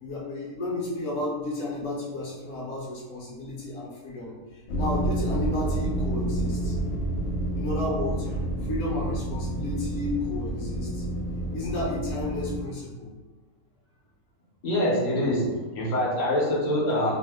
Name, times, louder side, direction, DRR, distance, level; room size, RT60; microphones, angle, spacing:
voice 1, 0.0-6.8 7.5-11.0 11.5-13.1, left 2 dB, 65° left, -4 dB, 1.0 m, -32 dB
sound 1, 4.7-12.6, right 1 dB, 85° left, 0.5 m, -29 dB
voice 2, 14.6-17.1, left 1 dB, 45° left, -5 dB, 0.6 m, -25 dB
2.7 x 2.1 x 3.4 m, 1.2 s
omnidirectional pair, 1.6 m